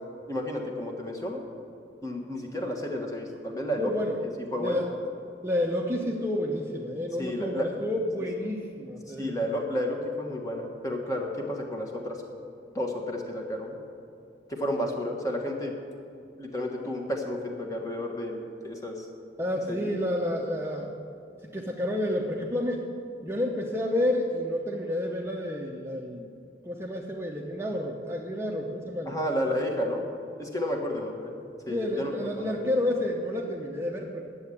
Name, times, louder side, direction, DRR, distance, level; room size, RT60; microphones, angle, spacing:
voice 1, 0.3-1.4 2.0-3.9 4.5-4.8 7.2-7.7 9.1-12.2 12.7-13.8 14.5-15.7 16.4-19.1 19.7-19.9 29.1-30.0 30.4-31.4 31.7-32.1 32.4-32.6, equal, 20° left, 1 dB, 1.4 m, -31 dB
voice 2, 3.8-4.2 4.6-4.9 5.4-9.4 19.4-20.9 21.4-22.8 23.2-26.3 26.6-29.2 31.7-34.2, left 1 dB, 15° right, -1 dB, 0.7 m, -30 dB
10.0 x 7.7 x 8.4 m, 2.6 s
head